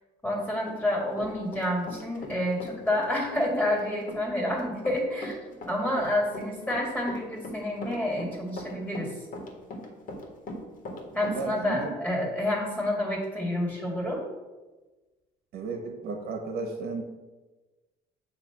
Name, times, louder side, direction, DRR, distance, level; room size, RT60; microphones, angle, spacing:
voice 1, 0.2-5.4 5.7-9.1 11.1-14.2, left 1 dB, 10° left, -1 dB, 2.2 m, -29 dB
Run, 0.7-2.3 2.6-11.4, left 1 dB, 55° left, 1.6 m, -40 dB
voice 2, 11.1-11.9 15.5-17.0, right 4 dB, 65° right, 3 dB, 1.1 m, -34 dB
8.0 x 2.9 x 6.0 m, 1.2 s
cardioid pair, 110°, 17 cm